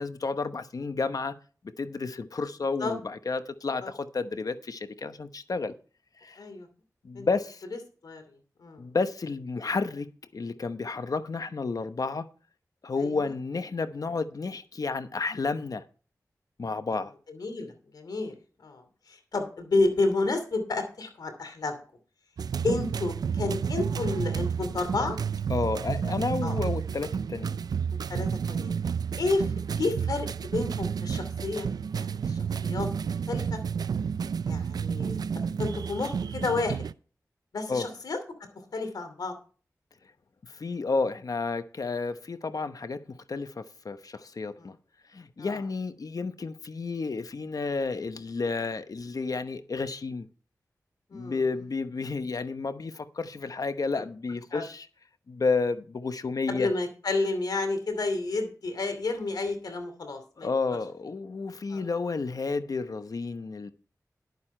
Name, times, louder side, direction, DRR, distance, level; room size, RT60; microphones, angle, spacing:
voice 1, 0.0-1.4 1.6-5.7 6.2-6.4 7.0-7.6 8.8-10.1 10.3-12.3 12.8-15.8 16.6-17.1 25.5-27.6 37.7-37.9 40.4-44.8 45.1-50.3 51.1-54.9 55.3-56.7 60.4-63.7, left 4 dB, 65° left, 1.0 m, -31 dB
voice 2, 6.4-6.7 7.1-7.3 8.0-8.9 13.0-13.3 17.3-18.3 18.6-21.8 22.6-25.2 26.4-26.6 28.1-28.7 29.2-32.9 33.3-33.6 34.5-35.2 35.6-36.9 37.5-38.2 38.7-39.3 44.6-44.7 45.4-45.6 51.1-51.4 53.9-54.0 54.5-54.6 56.5-60.5 61.7-61.8, left 3 dB, 85° left, 2.6 m, -31 dB
sound 1, 22.4-36.9, right 6 dB, 90° right, 0.4 m, -31 dB
11.0 x 9.3 x 4.4 m
cardioid pair, 45°, 7 cm